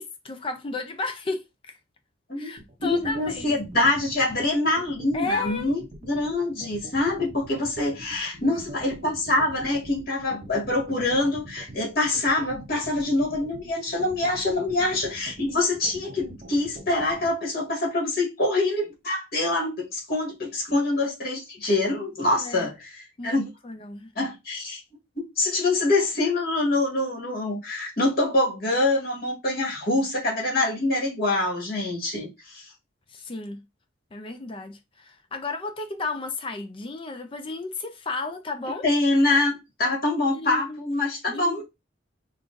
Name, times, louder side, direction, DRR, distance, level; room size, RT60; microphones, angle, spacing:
voice 1, 0.0-1.4 2.4-3.5 5.1-5.7 8.5-8.6 22.4-22.7 23.2-24.1 33.1-33.6 34.1-38.9 40.3-40.8 41.3-41.6, left 3 dB, 30° left, 0.5 m, -33 dB
sound 1, 2.6-17.3, right 2 dB, 40° right, 0.6 m, -43 dB
voice 2, 2.8-23.5 24.2-24.8 25.4-32.6 38.8-41.6, left 2 dB, 55° left, 1.9 m, -25 dB
5.4 x 2.4 x 2.5 m
head